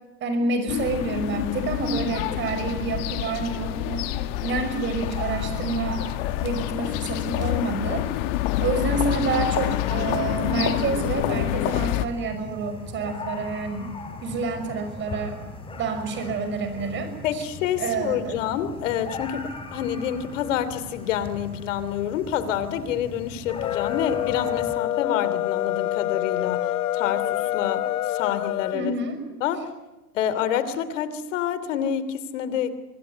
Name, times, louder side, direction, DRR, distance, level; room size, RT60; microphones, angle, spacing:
voice 1, 0.2-4.1 4.4-6.0 6.4-8.1 8.6-13.9 14.2-15.4 15.8-17.4 17.8-18.3 28.7-29.2, right 4 dB, 25° right, 9 dB, 6.0 m, -28 dB
sound 1, 0.7-12.1, left 15 dB, 40° left, 1.4 m, -27 dB
sound 2, 5.0-24.8, left 3 dB, 10° left, 3.7 m, -39 dB
voice 2, 17.2-26.6 26.9-28.9 29.4-29.7 30.1-32.7, left 9 dB, 55° left, 13 dB, 3.0 m, -28 dB
sound 3, 23.5-28.8, left 13 dB, 70° left, 0.8 m, -26 dB
25.5 x 22.0 x 9.7 m, 1.1 s
hypercardioid pair, 130°, 46 cm